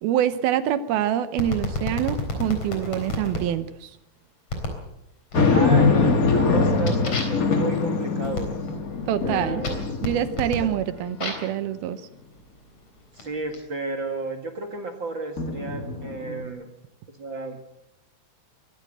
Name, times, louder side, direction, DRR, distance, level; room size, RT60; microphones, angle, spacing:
voice 1, 0.0-3.9 9.1-9.7 10.0-12.0, right 11 dB, 75° right, 12 dB, 2.6 m, -25 dB
sound 1, 1.4-3.4 4.5-4.8 5.3-5.8 6.2-11.6 12.4-13.6, left 2 dB, 40° left, 4.5 m, -33 dB
sound 2, 5.3-10.9 11.4-11.5 15.4-16.4, left 4 dB, 70° left, 0.8 m, -23 dB
voice 2, 5.5-8.6 9.2-10.0 10.6-10.7 13.1-16.7 17.1-17.6, right 3 dB, 45° right, 4 dB, 1.6 m, -33 dB
23.5 x 14.5 x 7.8 m, 0.90 s
omnidirectional pair, 4.7 m